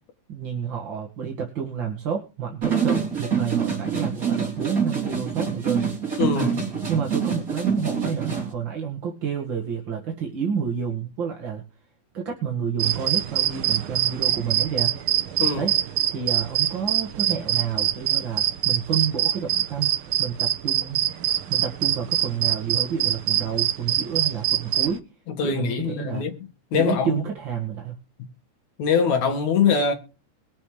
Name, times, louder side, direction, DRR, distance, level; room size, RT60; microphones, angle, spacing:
voice 1, 0.3-5.8 6.3-6.5 6.9-11.6 12.1-14.9 15.6-15.7 16.1-21.1 21.5-25.0 25.4-26.3 26.7-28.0, right 7 dB, 45° right, 2.1 m, -29 dB
sound 1, 2.6-8.5, right 6 dB, 25° right, 4.5 m, -26 dB
voice 2, 6.2-6.5 15.4-15.7 25.4-26.3 26.7-27.1 28.8-29.9, left 6 dB, 70° left, 3.1 m, -22 dB
sound 2, 12.8-25.0, right 12 dB, 80° right, 1.2 m, -24 dB
22.0 x 7.3 x 3.3 m
omnidirectional pair, 3.5 m